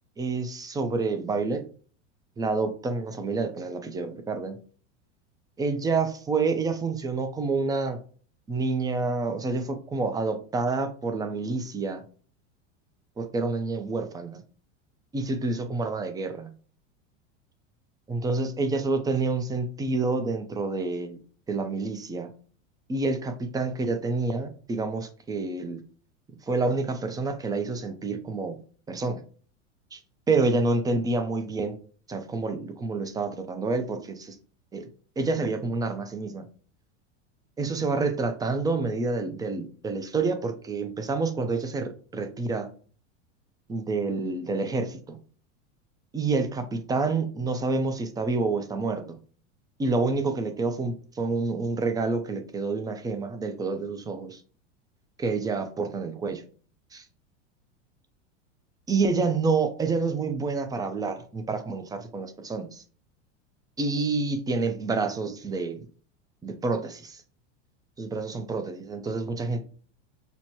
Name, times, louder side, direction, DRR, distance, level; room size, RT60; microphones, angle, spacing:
voice 1, 0.2-1.6 2.4-4.6 5.6-8.0 8.5-12.0 13.2-14.4 15.1-16.5 18.1-21.2 21.5-22.3 22.9-25.8 26.5-28.6 28.9-29.2 29.9-30.0 30.3-31.8 32.1-34.4 34.7-34.9 35.2-36.5 37.6-42.7 43.7-45.2 46.1-49.0 49.8-54.4 55.2-56.4 56.9-57.0 58.9-62.8 63.8-65.9 66.4-67.2 68.0-69.6, right 3 dB, 10° right, 8 dB, 0.5 m, -28 dB
6.2 x 2.1 x 2.8 m, 0.40 s
supercardioid pair, 115°, 37 cm